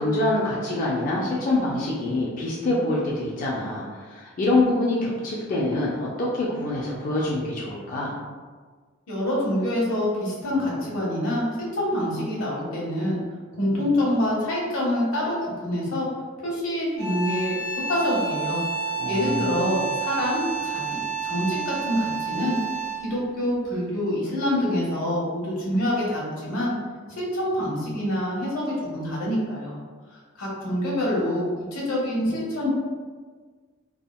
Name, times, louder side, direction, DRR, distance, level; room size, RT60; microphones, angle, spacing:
voice 1, 0.0-8.1 19.0-19.7, left 2 dB, 40° left, -6 dB, 0.4 m, -25 dB
voice 2, 9.1-13.2 13.5-16.1 16.4-17.6 17.9-18.6 19.1-22.6 23.0-26.7 27.2-29.7 30.4-31.4 31.7-32.7, left 1 dB, 85° left, -5 dB, 1.0 m, -26 dB
sound 1, 17.0-23.2, right 5 dB, 30° right, 0.7 m, -30 dB
3.4 x 2.2 x 2.2 m, 1.5 s
head